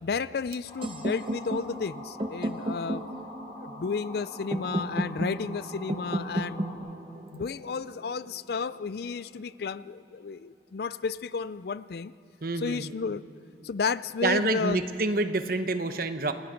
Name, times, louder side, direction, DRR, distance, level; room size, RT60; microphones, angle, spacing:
voice 1, 0.0-3.0 3.6-6.6 7.3-12.1 12.6-13.2 13.6-14.8, left 5 dB, 60° left, 17 dB, 0.4 m, -32 dB
sound 1, 0.7-6.7, left 2 dB, 30° left, 4.7 m, -45 dB
sound 2, 0.8-8.7, right 1 dB, 30° right, 1.1 m, -34 dB
voice 2, 12.4-12.9 14.2-16.3, right 2 dB, 50° right, 9 dB, 1.0 m, -27 dB
28.5 x 19.5 x 5.2 m, 3.0 s
head